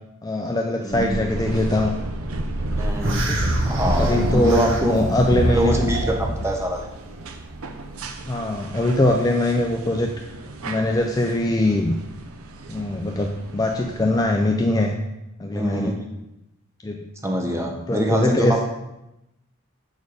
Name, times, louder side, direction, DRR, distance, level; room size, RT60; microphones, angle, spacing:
voice 1, 0.2-1.9 3.3-3.5 4.0-5.8 8.3-10.1 10.7-12.0 12.7-14.9 15.4-16.0 16.8-17.0 17.5-18.6, left 1 dB, 15° left, 2 dB, 0.4 m, -22 dB
voice 2, 0.8-1.2 2.8-3.2 3.6-5.0 5.4-6.9 15.5-16.0 17.2-18.6, equal, 15° right, 1 dB, 0.9 m, -24 dB
sound 1, 0.9-14.2, right 1 dB, 80° right, 0.7 m, -32 dB
sound 2, 3.0-6.4, right 1 dB, 60° right, 1.2 m, -24 dB
7.0 x 4.4 x 4.8 m, 0.90 s
head